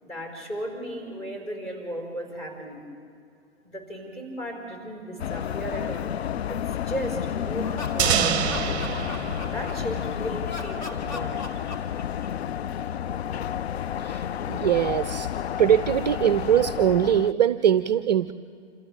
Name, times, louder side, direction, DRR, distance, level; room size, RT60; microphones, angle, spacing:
voice 1, 0.0-2.8 3.6-6.1 6.5-8.5 9.5-11.5, equal, 20° left, -1 dB, 5.1 m, -35 dB
sound 1, 5.2-17.3, left 9 dB, 65° left, 0.4 m, -31 dB
Laughter, 7.5-10.0 10.4-12.5, left 3 dB, 40° left, 2.4 m, -38 dB
sound 2, 8.0-10.8, right 9 dB, 20° right, 1.0 m, -27 dB
voice 2, 14.0-15.3 15.6-18.3, right 10 dB, 40° right, 12 dB, 0.5 m, -22 dB
28.0 x 27.0 x 3.5 m, 2.4 s
figure-of-eight pair, 120°, 35 cm